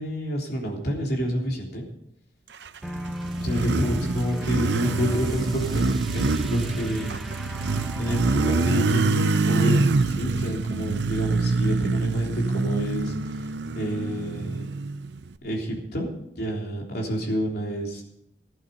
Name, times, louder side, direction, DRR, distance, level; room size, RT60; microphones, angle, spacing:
voice 1, 0.0-1.8 3.4-7.2 8.0-13.5 13.7-14.7 15.4-18.0, equal, 60° left, -1 dB, 3.5 m, -29 dB
Motorcycle, 2.7-15.3, right 3 dB, 70° right, 0.6 m, -25 dB
sound 1, 2.8-9.0, equal, ahead, 0.7 m, -36 dB
14.5 x 11.5 x 5.3 m, 0.78 s
head